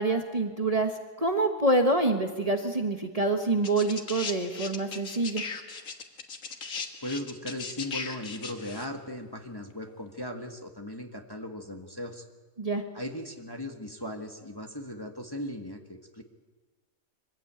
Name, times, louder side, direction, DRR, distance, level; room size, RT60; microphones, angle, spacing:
voice 1, 0.0-5.4 12.6-12.8, right 2 dB, 25° right, 3 dB, 1.4 m, -26 dB
sound 1, 3.6-8.8 9.9-10.0, left 4 dB, 70° left, 2.0 m, -37 dB
voice 2, 7.0-12.2 12.9-16.2, left 1 dB, 15° left, 3 dB, 1.5 m, -38 dB
24.0 x 15.5 x 8.8 m, 1.3 s
omnidirectional pair, 1.5 m